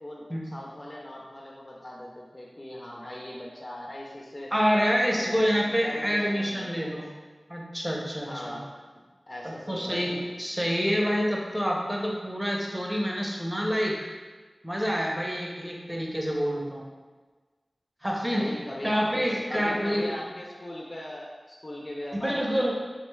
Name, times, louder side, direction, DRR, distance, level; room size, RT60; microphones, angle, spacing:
voice 1, 0.0-4.5 4.8-6.9 8.2-8.7 9.3-10.3 18.3-22.7, left 1 dB, 40° left, -3 dB, 0.4 m, -39 dB
voice 2, 4.5-7.1 7.5-8.6 9.4-14.0 14.6-16.8 18.0-18.4 18.8-20.1 22.2-22.7, equal, 5° right, -2 dB, 0.6 m, -27 dB
3.5 x 3.1 x 2.2 m, 1.4 s
wide cardioid pair, 65°, 0 cm